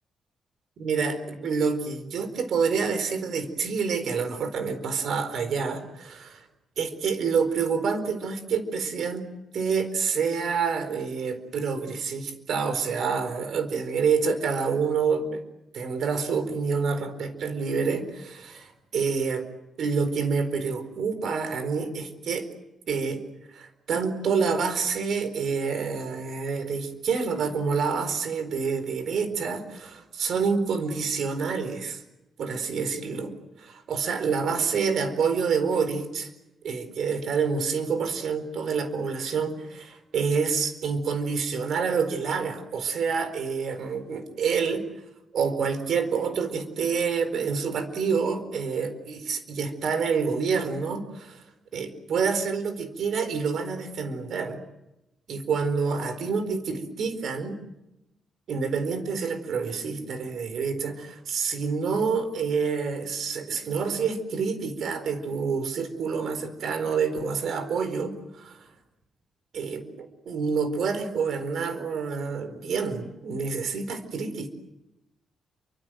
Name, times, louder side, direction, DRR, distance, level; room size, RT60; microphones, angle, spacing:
voice 1, 0.8-6.4 6.8-9.2 9.5-15.4 15.7-19.4 19.8-22.5 22.9-23.2 23.5-32.0 32.4-33.3 33.6-36.3 36.6-44.8 45.3-51.4 51.7-54.6 55.3-57.6 58.5-68.7 69.5-74.5, right 5 dB, 65° right, 10 dB, 4.5 m, -27 dB
29.5 x 24.5 x 7.8 m, 0.92 s
cardioid pair, 110°, 0 cm